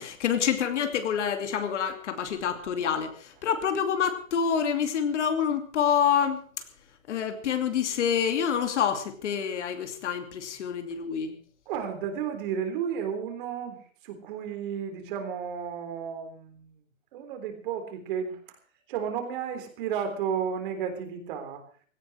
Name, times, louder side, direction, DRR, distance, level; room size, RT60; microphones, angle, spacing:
voice 1, 0.0-6.4 7.1-11.4, left 7 dB, 60° left, 8 dB, 2.6 m, -27 dB
voice 2, 11.7-13.8 14.0-16.8 17.1-18.4 18.9-21.6, right 7 dB, 40° right, 6 dB, 3.7 m, -32 dB
17.0 x 15.0 x 4.8 m, 0.44 s
hypercardioid pair, 165°, 40 cm